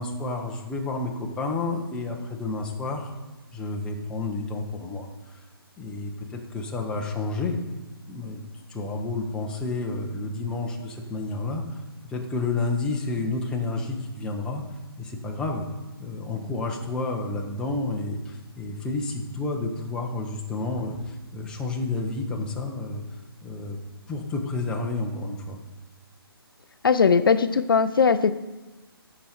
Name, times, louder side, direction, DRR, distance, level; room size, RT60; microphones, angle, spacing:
voice 1, 0.0-3.2 3.5-5.4 5.8-7.6 8.1-8.4 8.7-11.8 12.1-14.6 15.0-15.7 16.0-23.0 23.4-23.8 24.1-25.6, left 3 dB, 5° left, 0 dB, 0.9 m, -30 dB
voice 2, 26.8-28.3, left 5 dB, 60° left, 11 dB, 0.5 m, -19 dB
13.5 x 5.1 x 4.4 m, 1.1 s
figure-of-eight pair, 145°, 13 cm